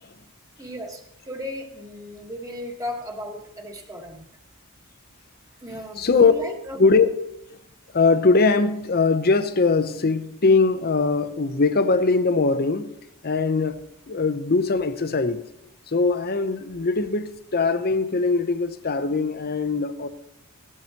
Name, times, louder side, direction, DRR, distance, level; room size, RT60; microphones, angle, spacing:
voice 1, 0.6-4.2 5.6-6.8, left 1 dB, 15° right, 1.5 m, -35 dB
voice 2, 6.0-6.3 6.8-7.1 7.9-12.9 13.2-13.8 14.1-15.5 15.9-20.1, left 4 dB, 45° left, 0.7 m, -21 dB
17.0 x 12.0 x 2.9 m
head